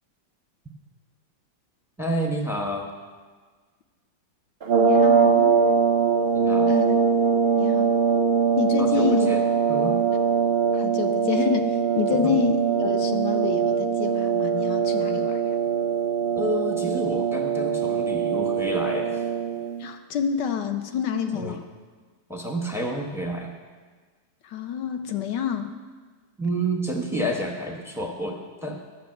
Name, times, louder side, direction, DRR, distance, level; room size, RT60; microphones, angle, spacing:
voice 1, 2.0-2.9 6.3-6.7 8.8-9.4 9.7-10.0 12.2-12.3 16.3-19.2 21.3-21.6 22.3-23.5 26.4-28.8, right 1 dB, ahead, 1 dB, 0.6 m, -29 dB
sound 1, 4.6-19.7, right 6 dB, 55° right, 0.6 m, -22 dB
voice 2, 4.8-5.7 6.7-7.0 7.6-7.9 8.6-9.3 10.7-15.4 19.8-21.7 24.4-25.8, left 8 dB, 75° left, 7 dB, 1.2 m, -28 dB
11.5 x 6.1 x 7.8 m, 1.5 s
omnidirectional pair, 2.1 m